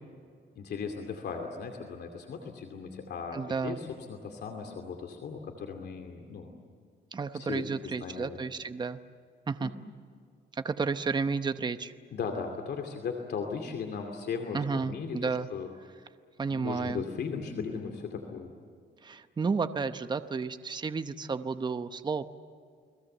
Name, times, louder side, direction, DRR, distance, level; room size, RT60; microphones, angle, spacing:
voice 1, 0.6-6.5 7.3-8.4 9.6-9.7 12.1-15.7 16.5-18.5, left 5 dB, 60° left, 4 dB, 2.6 m, -37 dB
voice 2, 3.3-3.8 7.1-9.0 9.5-9.7 10.5-11.9 14.5-15.5 16.4-17.0 19.0-22.3, right 4 dB, 20° right, 10 dB, 0.9 m, -32 dB
30.0 x 21.0 x 7.9 m, 2.2 s
cardioid pair, 145°, 19 cm